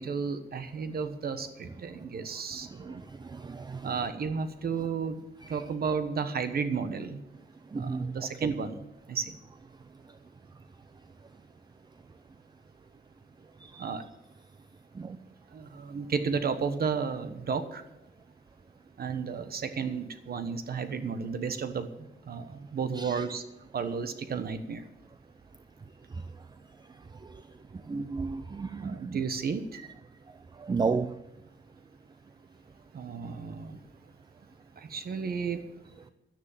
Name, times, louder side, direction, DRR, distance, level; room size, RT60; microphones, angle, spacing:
voice 1, 0.0-3.0 3.8-5.2 5.5-7.2 7.7-9.4 13.8-14.0 15.5-17.8 19.0-23.4 23.7-24.9 28.8-29.8 32.9-33.8 34.8-35.6, right 5 dB, 50° right, 1.2 m, -33 dB
voice 2, 3.2-3.9 7.7-8.1 13.6-13.9 15.0-15.2 23.0-23.1 27.9-29.2 30.6-31.1, right 4 dB, 20° right, 0.5 m, -32 dB
12.0 x 10.0 x 7.3 m
wide cardioid pair, 145°, 20 cm